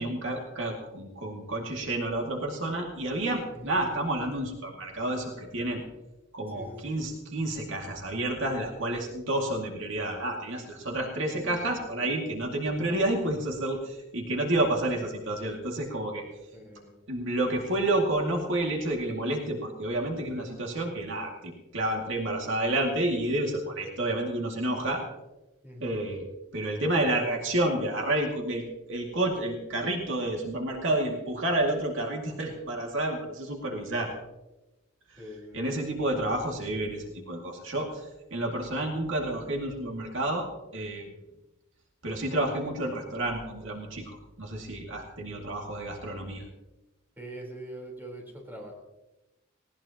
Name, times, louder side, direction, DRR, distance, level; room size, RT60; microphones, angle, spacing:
voice 1, 0.0-5.8 6.3-16.2 17.1-25.0 25.8-26.3 26.5-34.1 35.1-35.2 35.5-41.1 42.0-46.4, right 1 dB, 60° right, 0 dB, 2.3 m, -30 dB
voice 2, 6.5-7.0 11.3-12.1 16.5-17.1 25.6-26.0 35.2-36.0 47.2-48.7, equal, 10° right, 0 dB, 3.9 m, -44 dB
19.0 x 18.0 x 2.9 m, 1.0 s
head